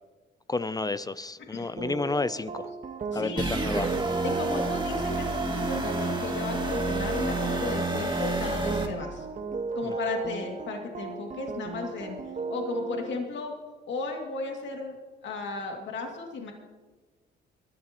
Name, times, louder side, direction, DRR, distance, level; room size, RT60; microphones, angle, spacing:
voice 1, 0.5-2.7 3.1-3.9 9.8-9.9, left 3 dB, 20° left, 16 dB, 0.5 m, -31 dB
sound 1, 1.8-13.1, right 4 dB, 40° right, 1.5 m, -35 dB
voice 2, 3.1-3.6 4.2-9.3 9.7-12.2 12.5-13.5 13.8-15.0 15.2-16.5, left 3 dB, 65° left, 1 dB, 2.5 m, -35 dB
sound 2, 3.4-8.9, right 2 dB, 25° right, 2.4 m, -29 dB
23.0 x 12.5 x 3.0 m, 1.3 s
cardioid pair, 90°, 20 cm